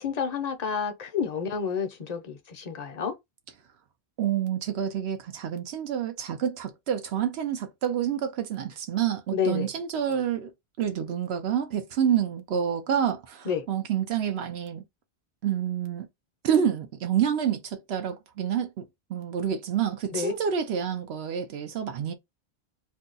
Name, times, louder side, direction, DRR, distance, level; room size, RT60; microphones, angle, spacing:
voice 1, 0.0-3.1 9.3-9.7 13.5-13.7 20.1-20.3, left 7 dB, 45° left, 0.6 m, -29 dB
voice 2, 4.2-10.5 10.8-14.8 15.4-16.1 16.4-18.8 19.1-22.1, right 9 dB, 80° right, 0.8 m, -28 dB
2.6 x 2.3 x 3.8 m
omnidirectional pair, 1.1 m